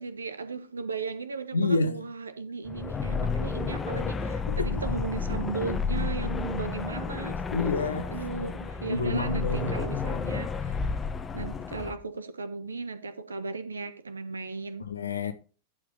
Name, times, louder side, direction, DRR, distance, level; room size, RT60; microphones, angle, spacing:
voice 1, 0.0-7.4 8.1-10.8 11.3-14.9, right 4 dB, 75° right, 1.2 m, -36 dB
voice 2, 1.5-2.0 4.5-4.7 7.5-8.1 8.9-9.7 14.9-15.3, left 3 dB, 75° left, 1.0 m, -28 dB
sound 1, 2.6-11.9, left 5 dB, 20° left, 1.1 m, -31 dB
11.0 x 4.8 x 5.0 m
figure-of-eight pair, 90°, 0 cm